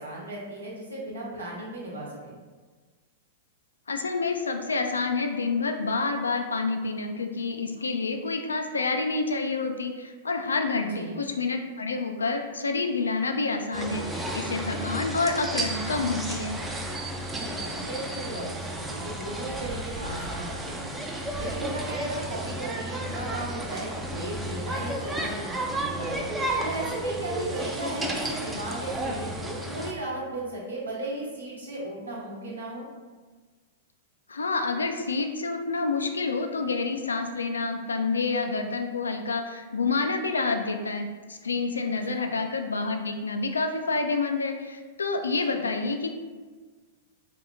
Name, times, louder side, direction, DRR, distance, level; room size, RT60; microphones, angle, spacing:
voice 1, 0.0-2.4 10.9-11.2 17.3-21.0 21.4-26.2 26.6-32.8 42.1-42.3 45.7-45.8, right 1 dB, 85° right, -5 dB, 1.0 m, -36 dB
voice 2, 3.9-16.6 34.3-46.1, left 3 dB, 85° left, 5 dB, 0.3 m, -28 dB
sound 1, 13.7-29.9, right 1 dB, 10° right, 0.4 m, -32 dB
2.9 x 2.6 x 3.2 m, 1.4 s
hypercardioid pair, 105°, 0 cm